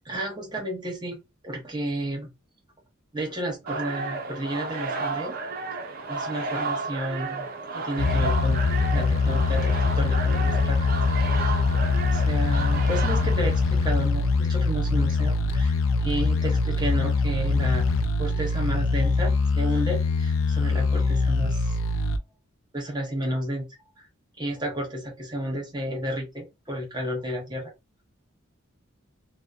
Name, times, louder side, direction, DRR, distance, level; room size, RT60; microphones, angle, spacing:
voice 1, 0.1-2.3 3.1-5.3 6.1-7.5 7.7-8.6 8.9-10.9 12.1-15.7 16.0-21.6 22.7-23.7 24.4-27.7, right 1 dB, 20° right, 0.8 m, -32 dB
sound 1, 3.7-14.1, right 4 dB, 45° right, 0.4 m, -32 dB
sound 2, 8.0-22.2, left 4 dB, 75° left, 0.3 m, -23 dB
2.6 x 2.0 x 2.3 m
head